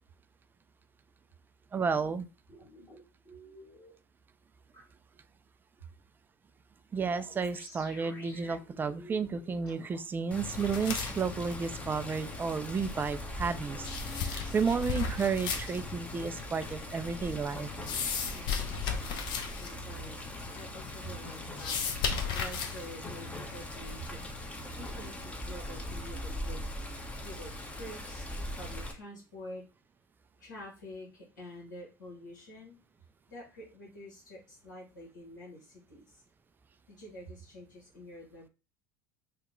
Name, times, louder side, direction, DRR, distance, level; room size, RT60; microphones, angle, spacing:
voice 1, 1.7-2.3 6.9-17.7, right 5 dB, 20° right, 11 dB, 0.3 m, -32 dB
sound 1, 2.5-3.9 4.7-4.8 7.1-10.0, equal, 30° left, 1.3 m, -52 dB
Water, 10.3-28.9, left 1 dB, 10° left, 0.7 m, -41 dB
sound 2, 10.5-23.7, left 6 dB, 50° left, 0.6 m, -37 dB
voice 2, 18.3-18.7 19.6-24.2 24.7-26.6 27.2-28.3 28.6-29.7 30.4-32.8 33.3-36.2 36.9-38.5, equal, 80° left, -4 dB, 1.1 m, -47 dB
2.9 x 2.2 x 3.6 m, 0.31 s
hypercardioid pair, 80°, 10 cm